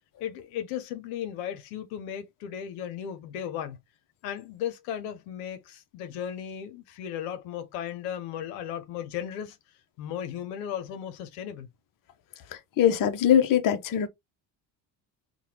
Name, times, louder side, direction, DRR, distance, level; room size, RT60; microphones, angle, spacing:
voice 1, 0.2-3.8 4.2-9.6 10.0-11.7, left 9 dB, 85° left, 0.7 m, -36 dB
voice 2, 12.8-14.1, left 9 dB, 45° left, 0.6 m, -22 dB
3.1 x 2.2 x 2.8 m
supercardioid pair, 80°, 49 cm